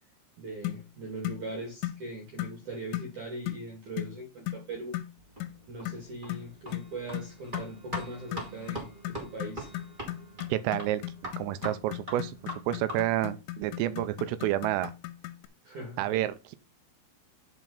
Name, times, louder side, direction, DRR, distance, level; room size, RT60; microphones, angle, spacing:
voice 1, 0.4-5.0 5.7-9.7 15.6-16.2, right 2 dB, 50° right, 2.7 m, -40 dB
sound 1, 0.6-0.9 1.2-1.5 1.8-2.0 2.4-2.6 2.9-3.1 3.5-3.7 4.0-4.2 4.5-4.7 4.9-5.1 5.4-5.6 5.9-15.5, left 16 dB, 85° left, 3.4 m, -37 dB
sound 2, 5.2-13.2, right 1 dB, 15° right, 1.7 m, -43 dB
voice 2, 10.5-14.9 16.0-16.6, right 14 dB, 85° right, 3.4 m, -30 dB
11.0 x 5.7 x 4.0 m
omnidirectional pair, 5.8 m